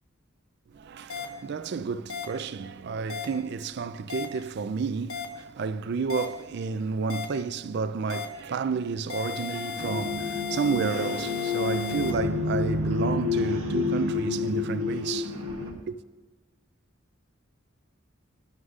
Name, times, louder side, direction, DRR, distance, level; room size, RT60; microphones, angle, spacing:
voice 1, 0.7-15.4 15.9-16.0, right 5 dB, 50° right, 0.4 m, -31 dB
sound 1, 1.1-1.2 2.1-2.2 3.1-3.2 4.1-4.2 5.1-5.2 6.1-6.2 7.1-7.2 8.1-8.2 9.1-12.1, left 7 dB, 75° left, 1.2 m, -35 dB
sound 2, 9.8-15.7, left 3 dB, 90° right, 1.5 m, -29 dB
12.5 x 11.0 x 2.4 m
head